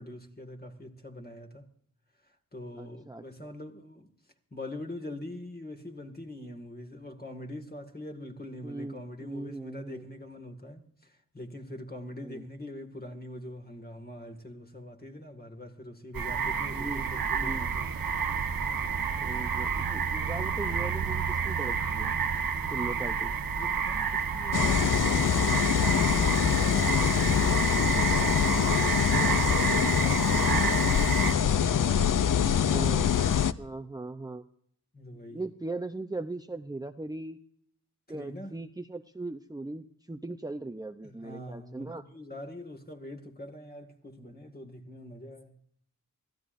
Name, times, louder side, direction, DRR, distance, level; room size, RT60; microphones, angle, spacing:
voice 1, 0.0-1.7 2.5-4.1 4.5-18.1 23.6-33.0 34.9-35.4 38.1-38.6 41.0-45.6, left 1 dB, 25° left, 2.2 m, -43 dB
voice 2, 2.7-3.5 8.6-10.0 12.2-12.4 16.7-17.1 17.3-17.7 19.2-22.2 22.7-23.3 32.5-33.1 33.6-34.4 35.3-37.4 38.1-42.0, right 2 dB, 10° right, 0.7 m, -39 dB
sound 1, 16.1-31.3, right 6 dB, 80° right, 1.4 m, -30 dB
sound 2, 24.5-33.5, left 8 dB, 65° left, 0.7 m, -24 dB
25.0 x 16.0 x 2.6 m
wide cardioid pair, 80°, 34 cm